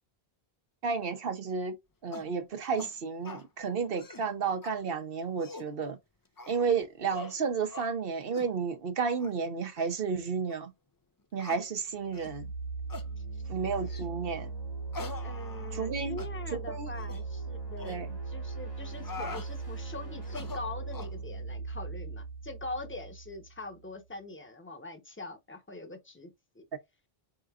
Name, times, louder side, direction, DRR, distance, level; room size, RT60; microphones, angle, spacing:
voice 1, 0.8-1.8 2.0-6.0 6.5-10.7 11.3-12.5 13.5-14.5 15.7-16.2 16.5-16.9 17.8-18.1, right 5 dB, 65° right, 1.0 m, -32 dB
sound 1, 2.1-2.3 2.8-2.9 3.2-3.5 3.9-4.3 4.6-4.7 5.2-5.7 6.4-6.7 7.1-7.4 7.7-7.9 8.3-8.5 9.1-9.3 9.8-9.9 10.5-10.6 11.4-11.6 12.1-12.4 12.9-13.1 13.9-14.1 14.9-15.9 16.2-16.3 16.9-17.2 17.8-18.0 18.8-19.5 20.2-21.2, left 3 dB, 30° left, 0.4 m, -43 dB
sound 2, 12.0-23.8, right 4 dB, 70° left, 2.7 m, -39 dB
voice 2, 15.2-26.6, left 2 dB, 10° left, 0.9 m, -43 dB
4.9 x 3.8 x 2.4 m
omnidirectional pair, 1.0 m